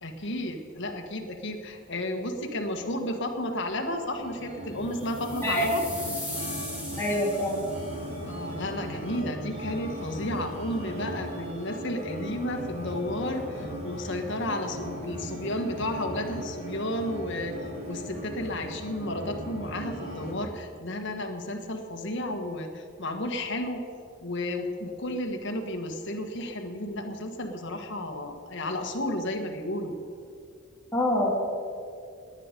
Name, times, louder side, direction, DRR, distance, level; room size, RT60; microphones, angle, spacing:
voice 1, 0.0-5.8 8.2-17.5 17.9-23.8 24.2-29.9, left 1 dB, 60° left, 4 dB, 1.5 m, -32 dB
sound 1, 4.1-20.3, equal, 30° right, 3.7 m, -38 dB
sound 2, 4.9-8.1, left 1 dB, 5° right, 3.4 m, -39 dB
voice 2, 7.0-7.6 30.9-31.3, left 1 dB, 10° left, -4 dB, 3.2 m, -25 dB
19.0 x 10.0 x 5.3 m, 2.4 s
head